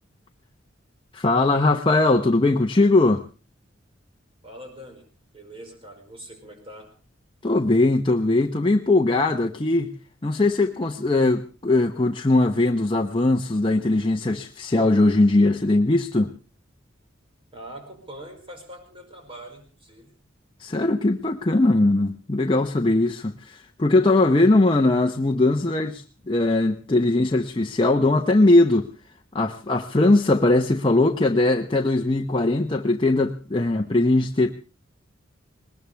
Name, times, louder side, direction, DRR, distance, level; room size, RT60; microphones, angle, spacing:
voice 1, 1.1-3.2 7.4-9.9 10.2-16.3 20.6-28.9 29.3-34.5, left 2 dB, 25° left, 3 dB, 0.8 m, -20 dB
voice 2, 4.4-5.1 5.3-6.9 17.5-20.2, right 1 dB, 30° right, 2 dB, 5.2 m, -43 dB
20.5 x 19.5 x 3.4 m, 0.35 s
head